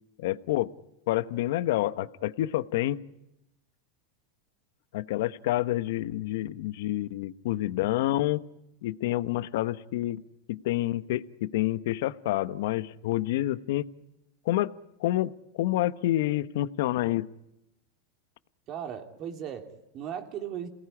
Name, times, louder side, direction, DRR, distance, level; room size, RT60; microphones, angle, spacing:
voice 1, 0.2-0.7 1.1-3.0 4.9-8.4 8.8-10.2 10.5-13.9 14.4-14.7 15.0-17.3, left 15 dB, 70° left, 14 dB, 1.0 m, -28 dB
voice 2, 18.7-20.7, right 9 dB, 40° right, 5 dB, 3.1 m, -37 dB
28.0 x 18.5 x 9.8 m, 0.90 s
supercardioid pair, 130°, 0 cm